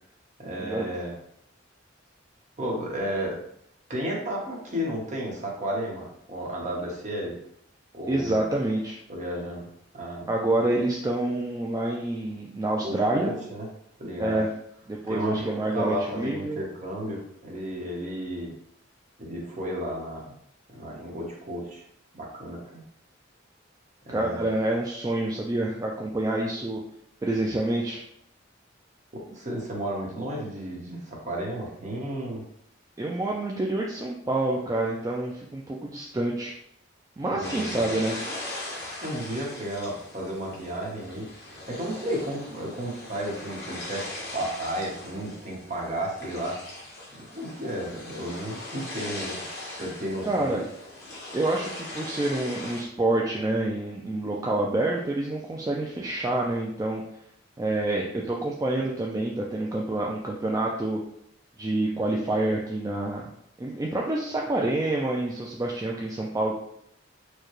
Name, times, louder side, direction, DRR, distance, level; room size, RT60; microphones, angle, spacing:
voice 1, 0.4-1.1 2.6-3.4 3.9-7.4 7.9-8.4 9.1-9.7 9.9-10.3 12.8-13.7 14.0-14.4 15.1-18.5 19.2-20.3 20.7-21.8 22.1-22.8 24.1-24.5 29.1-32.4 37.3-37.9 39.0-41.3 41.7-44.1 44.3-46.6 47.1-49.4 49.7-50.7, equal, 40° right, -2 dB, 1.0 m, -33 dB
voice 2, 8.1-9.0 10.3-13.3 14.2-14.5 14.9-16.6 24.1-26.8 27.2-28.0 33.0-36.5 37.2-38.2 50.2-50.6 51.3-57.0 57.6-61.0 61.6-63.3 63.6-66.5, right 2 dB, 15° right, -2 dB, 0.3 m, -27 dB
sound 1, 37.4-52.8, left 1 dB, 55° left, 1.2 m, -39 dB
4.5 x 2.2 x 3.1 m, 0.72 s
head